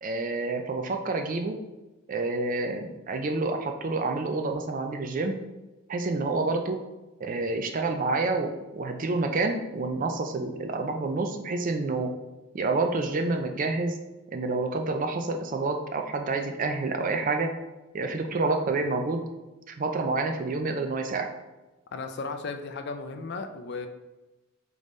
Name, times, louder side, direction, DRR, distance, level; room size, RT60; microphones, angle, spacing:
voice 1, 0.0-1.6 2.1-5.4 5.9-6.8 7.2-12.1 12.5-14.0 14.3-17.5 17.9-19.3 19.7-21.3, right 3 dB, 40° right, 5 dB, 0.4 m, -28 dB
voice 2, 21.9-23.9, left 4 dB, 50° left, 7 dB, 0.4 m, -35 dB
3.9 x 3.4 x 3.1 m, 1.1 s
head